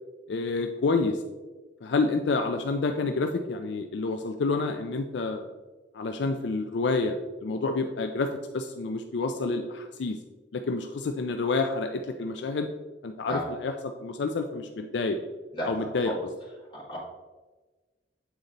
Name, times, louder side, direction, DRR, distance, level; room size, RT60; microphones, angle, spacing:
voice 1, 0.3-1.2 1.8-5.5 5.9-8.3 8.5-10.2 10.5-12.7 13.0-13.7 14.0-15.2 15.7-16.1, left 3 dB, 70° left, 5 dB, 0.4 m, -28 dB
voice 2, 15.5-16.2 16.7-17.0, equal, 25° left, -6 dB, 2.2 m, -34 dB
8.1 x 4.1 x 3.9 m, 1.3 s
head